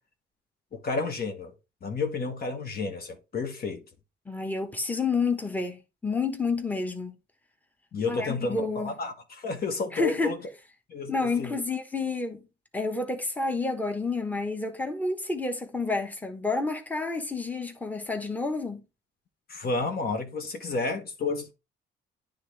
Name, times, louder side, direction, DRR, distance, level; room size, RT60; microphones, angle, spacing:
voice 1, 0.7-1.5 1.8-3.8 7.9-10.4 10.9-11.5 19.5-21.5, left 3 dB, 50° left, 1.3 m, -31 dB
voice 2, 4.3-7.1 8.1-9.0 9.9-10.4 11.1-12.4 12.7-18.8, left 3 dB, 10° left, 1.2 m, -29 dB
9.7 x 3.5 x 3.4 m
cardioid pair, 90°, 20 cm